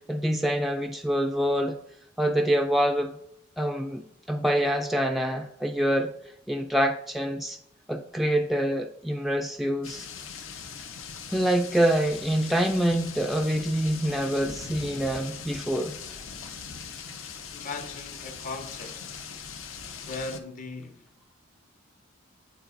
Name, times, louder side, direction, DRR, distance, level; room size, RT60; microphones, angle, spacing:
voice 1, 0.1-1.8 2.2-3.1 3.6-4.0 4.3-6.1 6.5-7.6 7.9-10.1 11.3-15.9, right 1 dB, ahead, 0.3 m, -26 dB
sound 1, 9.8-20.4, left 6 dB, 90° left, 0.7 m, -40 dB
voice 2, 17.5-19.1 20.0-21.0, left 3 dB, 40° left, 0.7 m, -38 dB
11.0 x 4.0 x 2.6 m
head